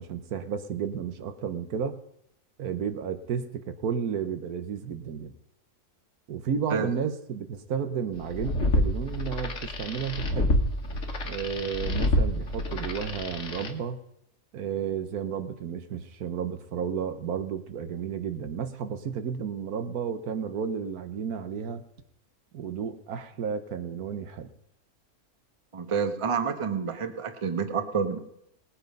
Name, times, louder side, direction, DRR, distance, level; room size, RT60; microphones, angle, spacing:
voice 1, 0.0-2.0 2.6-5.3 6.3-10.5 11.2-14.0 14.5-21.8 22.5-24.5, right 7 dB, 75° right, 9 dB, 1.4 m, -32 dB
sound 1, 8.2-13.7, left 1 dB, 55° left, 1.7 m, -28 dB
voice 2, 25.7-28.2, right 6 dB, 25° right, 9 dB, 0.9 m, -28 dB
19.0 x 8.7 x 5.3 m, 0.76 s
omnidirectional pair, 1.6 m